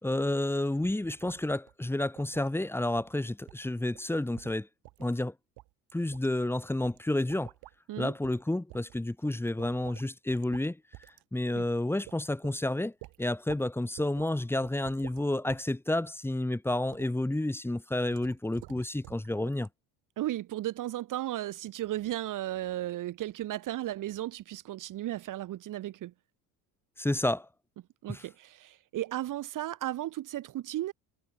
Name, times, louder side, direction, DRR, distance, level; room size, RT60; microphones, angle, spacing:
voice 1, 0.0-4.7 5.0-5.3 5.9-7.5 8.0-10.8 11.3-12.9 13.2-19.7 27.0-27.5 28.1-28.2, left 1 dB, 5° left, 3.5 m, -30 dB
sound 1, 1.2-1.4 1.7-1.8 2.2-2.5 3.0-3.1 3.5-3.7 3.9-4.1 4.4-5.2 5.6-6.3 6.8-7.0 7.3-7.7 8.2-8.4 8.7-10.1 10.3-10.7 10.9-11.2 11.6-11.7 12.1-12.6 13.0-13.7 14.0-14.3 14.6-15.6 16.0-16.3 16.9-17.1 18.1-19.3 19.5-19.7, right 19 dB, 65° right, 4.5 m, -50 dB
voice 2, 20.2-26.1 28.0-30.9, right 14 dB, 50° right, 2.0 m, -35 dB
cardioid pair, 150°, 42 cm